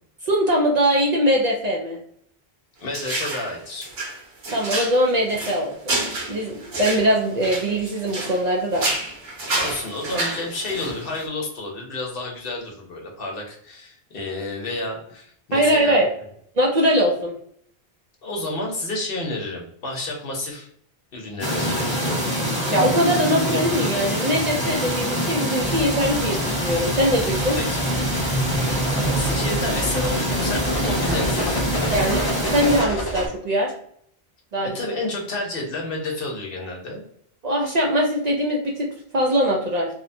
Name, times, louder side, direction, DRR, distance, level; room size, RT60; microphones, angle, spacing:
voice 1, 0.2-2.0 4.5-6.0 6.3-8.9 15.5-16.1 16.6-17.3 22.7-27.6 31.9-33.7 34.5-34.8 37.4-39.9, equal, 50° right, -1 dB, 0.5 m, -21 dB
voice 2, 2.8-3.9 9.5-16.0 18.2-20.7 21.1-22.2 27.5-27.9 28.9-32.0 34.6-37.0, left 2 dB, 65° left, 0 dB, 0.9 m, -30 dB
sound 1, 2.9-3.5 3.8-8.4 8.7-11.2, right 2 dB, 80° right, 1.2 m, -29 dB
sound 2, 21.4-32.8, equal, 10° left, 0.9 m, -25 dB
sound 3, 25.6-33.3, equal, 35° left, 0.4 m, -30 dB
2.7 x 2.1 x 2.6 m, 0.66 s
omnidirectional pair, 1.0 m